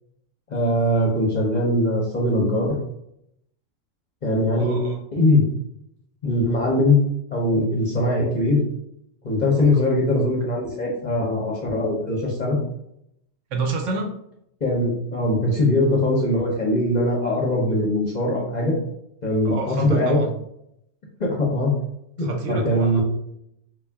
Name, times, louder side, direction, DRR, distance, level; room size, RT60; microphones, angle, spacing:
voice 1, 0.5-2.8 4.2-4.8 5.1-5.5 6.2-7.0 7.3-8.6 9.2-12.6 14.6-18.7 19.2-20.2 21.2-21.7 22.2-23.0, left 1 dB, 40° left, -3 dB, 0.7 m, -21 dB
voice 2, 4.6-5.0 13.5-14.1 19.4-20.3 22.2-23.0, right 3 dB, 70° right, 3 dB, 0.9 m, -28 dB
3.5 x 2.4 x 3.4 m, 0.76 s
omnidirectional pair, 1.4 m